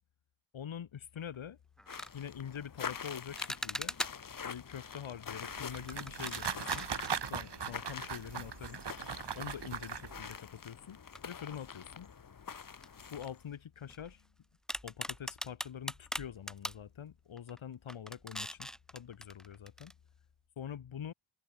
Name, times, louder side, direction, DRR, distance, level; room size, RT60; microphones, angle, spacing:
voice 1, 0.5-1.6 2.1-4.0 4.4-6.9 7.3-8.8 9.3-12.1 13.1-14.3 14.8-19.9 20.6-21.1, left 8 dB, 75° left, 3.6 m, -45 dB
sound 1, 1.2-1.4 1.8-2.2 3.4-4.4 5.7-8.1 8.4-8.5 9.2-9.3 11.1-11.8 12.1-12.3 12.8-14.3 14.7-16.8 17.4-17.6 17.9-19.9, equal, ahead, 1.6 m, -42 dB
sound 2, 1.9-13.4, left 6 dB, 45° left, 1.5 m, -46 dB
sound 3, 5.4-10.4, right 6 dB, 60° right, 3.8 m, -39 dB
cardioid pair, 75°, 48 cm